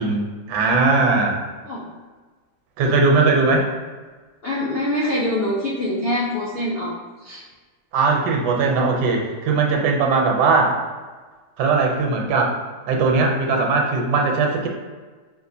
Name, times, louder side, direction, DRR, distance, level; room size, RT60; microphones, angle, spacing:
voice 1, 0.0-1.4 2.8-3.7 7.9-10.8 11.6-12.5 12.9-14.7, right 3 dB, 75° right, 1 dB, 1.2 m, -19 dB
voice 2, 4.4-6.9 7.2-7.4, left 1 dB, 65° left, -6 dB, 0.5 m, -24 dB
5.8 x 2.4 x 2.6 m, 1.3 s
omnidirectional pair, 1.8 m